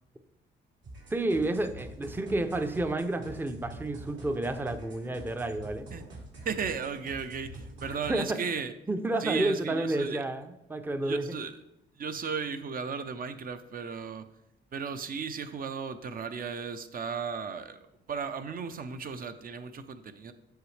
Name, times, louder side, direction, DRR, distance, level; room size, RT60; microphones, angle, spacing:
sound 1, 0.8-8.2, right 1 dB, 70° right, 3.0 m, -46 dB
voice 1, 1.1-5.9 8.1-8.4 8.9-11.4, right 2 dB, 10° right, 9 dB, 0.6 m, -30 dB
voice 2, 6.4-8.7 9.2-10.2 11.0-11.5 12.0-14.3 14.7-20.3, right 6 dB, 45° right, 10 dB, 0.7 m, -35 dB
8.0 x 6.2 x 3.3 m, 0.87 s
cardioid pair, 90°, 20 cm